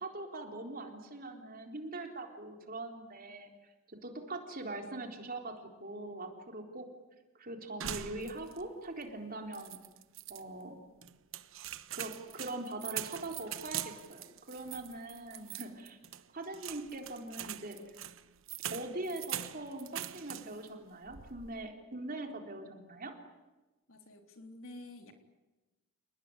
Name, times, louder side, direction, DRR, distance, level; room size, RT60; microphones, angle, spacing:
voice 1, 0.0-6.9 7.4-9.8 10.3-10.8 11.9-16.0 16.3-17.8 18.7-23.1, right 2 dB, 40° right, 3 dB, 3.9 m, -42 dB
sound 1, 7.8-8.7 9.0-9.1 9.5-10.4 11.0-20.7 21.1-21.6, right 11 dB, 65° right, 1.1 m, -43 dB
voice 2, 23.9-25.1, left 2 dB, 70° left, 5 dB, 3.7 m, -50 dB
29.5 x 20.0 x 9.9 m, 1.1 s
head